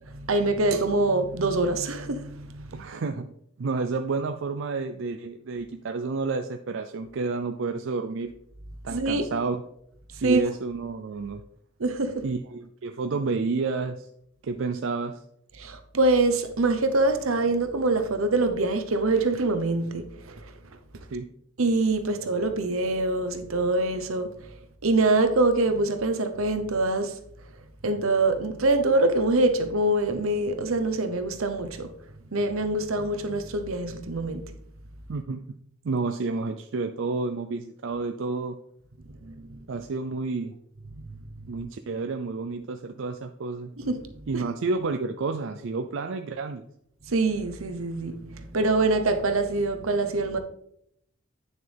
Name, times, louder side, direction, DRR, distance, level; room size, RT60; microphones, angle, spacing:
voice 1, 0.1-2.9 8.9-9.2 10.2-10.4 11.8-12.3 15.6-20.5 21.6-24.5 24.8-27.2 27.8-31.9 32.3-34.5 39.2-39.6 43.8-44.4 47.1-50.4, right 2 dB, 80° right, 0.8 m, -25 dB
voice 2, 2.7-3.3 3.6-8.3 8.8-9.6 10.2-11.4 12.2-14.1 14.4-15.2 21.1-21.3 35.1-35.4 35.8-38.6 39.7-40.5 41.5-43.7 44.3-46.6, right 4 dB, 65° right, 0.4 m, -30 dB
9.0 x 6.6 x 3.4 m
head